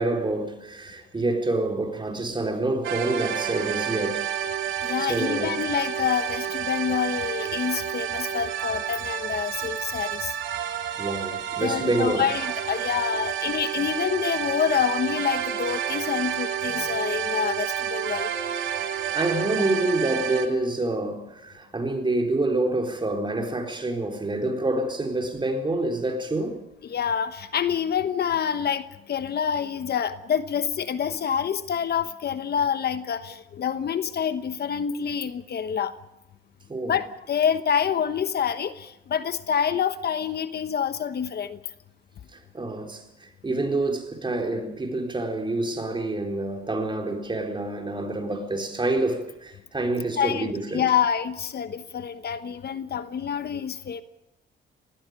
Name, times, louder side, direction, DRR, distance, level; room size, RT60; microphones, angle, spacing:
voice 1, 0.0-4.3 5.0-5.5 11.0-12.3 19.1-26.6 36.7-36.9 42.3-50.9, right 2 dB, 25° right, 4.1 m, -27 dB
sound 1, 2.8-20.5, right 9 dB, 85° right, 2.7 m, -30 dB
voice 2, 4.8-10.3 11.6-18.3 19.6-19.7 26.8-35.9 36.9-41.6 50.2-54.0, left 8 dB, 55° left, 1.1 m, -27 dB
19.0 x 15.5 x 9.7 m
cardioid pair, 90°, 20 cm